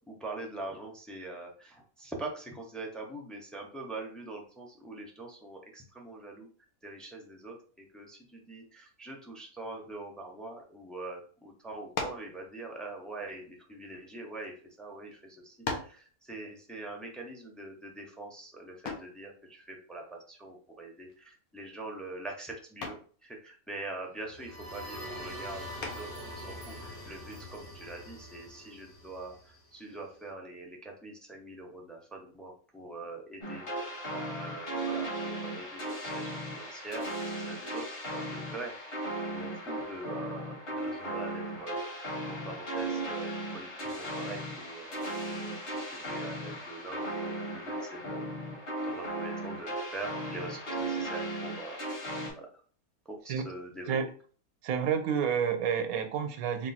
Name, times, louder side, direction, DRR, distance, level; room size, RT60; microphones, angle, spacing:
voice 1, 0.1-6.5 6.8-23.0 23.2-33.7 34.1-38.7 39.2-41.8 42.3-43.3 43.5-45.6 45.9-48.3 48.8-51.8 52.4-52.5 53.1-54.0, right 2 dB, ahead, 0 dB, 0.4 m, -43 dB
sound 1, 11.9-12.3 13.3-14.4 15.1-15.2 15.6-16.0 18.8-19.2 21.1-21.5 21.8-22.2 22.8-23.1 25.8-26.3, left 4 dB, 85° left, 1.3 m, -38 dB
sound 2, 24.2-29.9, equal, 70° left, 1.8 m, -44 dB
sound 3, 33.4-52.3, right 1 dB, 45° left, 1.7 m, -36 dB
voice 2, 54.6-56.7, right 7 dB, 80° right, 7 dB, 1.1 m, -29 dB
3.6 x 2.5 x 4.1 m, 0.42 s
omnidirectional pair, 1.5 m